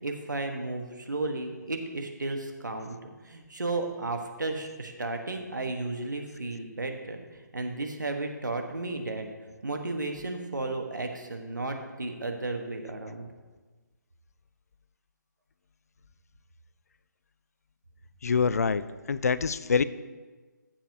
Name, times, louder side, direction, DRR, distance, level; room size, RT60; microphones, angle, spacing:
voice 1, 0.0-3.0 3.2-7.2 7.5-9.3 9.6-13.3, right 2 dB, 70° right, 3 dB, 1.4 m, -33 dB
voice 2, 18.2-18.8 19.1-19.8, left 5 dB, 55° left, 15 dB, 0.4 m, -25 dB
15.5 x 7.3 x 2.9 m, 1.3 s
figure-of-eight pair, 145°, 10 cm